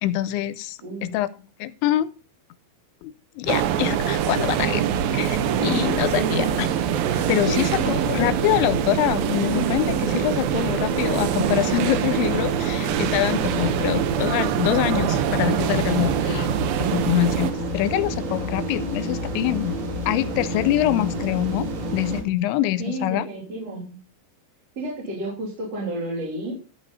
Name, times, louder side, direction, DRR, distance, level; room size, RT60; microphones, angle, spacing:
voice 1, 0.0-1.3 1.6-2.1 3.0-4.8 5.1-6.7 7.1-16.5 16.9-19.7 20.1-23.3, left 14 dB, 85° left, 16 dB, 2.9 m, -25 dB
voice 2, 0.8-1.1 6.1-6.6 7.4-8.1 16.2-16.4 22.8-24.0 24.8-26.6, right 1 dB, 35° right, -6 dB, 3.4 m, -31 dB
sound 1, 3.4-22.2, right 2 dB, 55° right, 3.2 m, -30 dB
sound 2, 3.5-17.5, right 10 dB, 80° right, 2.1 m, -24 dB
14.0 x 4.8 x 5.4 m, 0.35 s
omnidirectional pair, 5.2 m